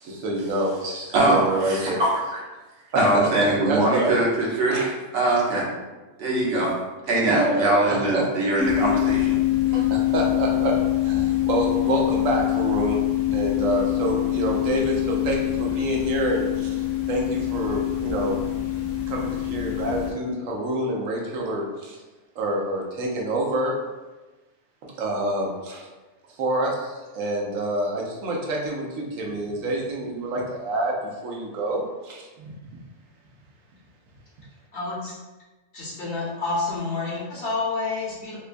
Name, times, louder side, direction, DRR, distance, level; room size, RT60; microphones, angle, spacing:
voice 1, 0.0-0.7 1.2-2.0 2.9-3.3 3.6-4.2 4.7-4.8 7.3-8.2 9.7-13.0 13.3-16.8 17.1-18.4 19.1-22.0 22.4-23.8 24.8-25.9 26.4-30.9 31.2-32.5, right 1 dB, 85° right, -1 dB, 1.1 m, -27 dB
voice 2, 0.8-2.4 2.9-5.7 6.2-6.7 7.1-9.4 9.7-9.8, right 2 dB, 55° right, -5 dB, 1.0 m, -22 dB
sound 1, 8.6-20.1, left 14 dB, 80° left, 0.9 m, -24 dB
voice 3, 34.7-35.1 35.7-38.4, left 3 dB, 50° left, -7 dB, 1.0 m, -29 dB
3.8 x 2.2 x 2.5 m, 1.2 s
omnidirectional pair, 1.3 m